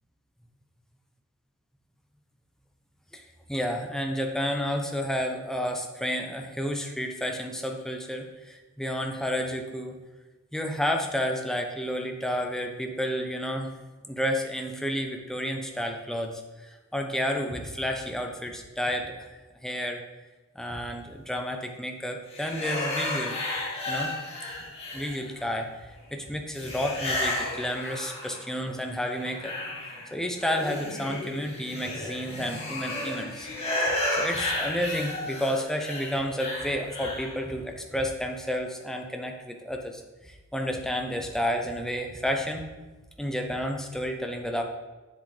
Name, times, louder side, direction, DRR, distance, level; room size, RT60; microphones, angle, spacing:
voice 1, 3.5-10.0 10.5-13.7 14.1-20.0 20.5-23.4 23.9-24.1 24.9-29.5 30.1-33.5 33.9-42.6 43.2-44.6, equal, ahead, 2 dB, 0.7 m, -31 dB
sound 1, 22.3-25.5 26.6-28.6 28.9-37.4, left 1 dB, 30° left, 1.6 m, -33 dB
7.5 x 7.0 x 3.3 m, 1.2 s
head